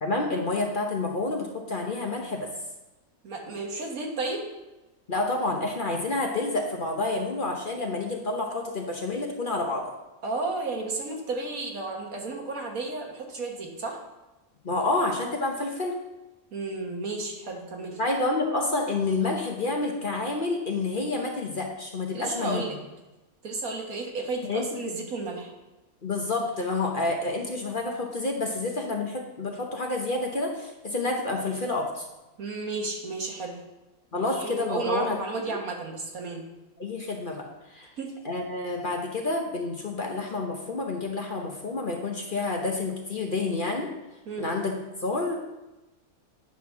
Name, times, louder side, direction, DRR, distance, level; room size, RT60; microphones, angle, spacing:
voice 1, 0.0-2.5 5.1-9.8 14.6-16.0 18.0-22.7 24.4-24.9 26.0-32.1 34.1-35.2 35.5-35.6 36.8-37.4 37.7-37.9 38.2-43.9 44.4-44.7 45.0-45.4, left 2 dB, 40° left, 1 dB, 0.9 m, -29 dB
voice 2, 3.2-4.4 10.2-14.0 16.5-18.0 22.1-22.8 23.4-25.5 32.4-33.6 34.2-36.4 38.0-38.1 44.3-44.5, right 3 dB, 75° right, 1 dB, 1.8 m, -32 dB
9.4 x 3.9 x 5.9 m, 1.0 s
omnidirectional pair, 1.5 m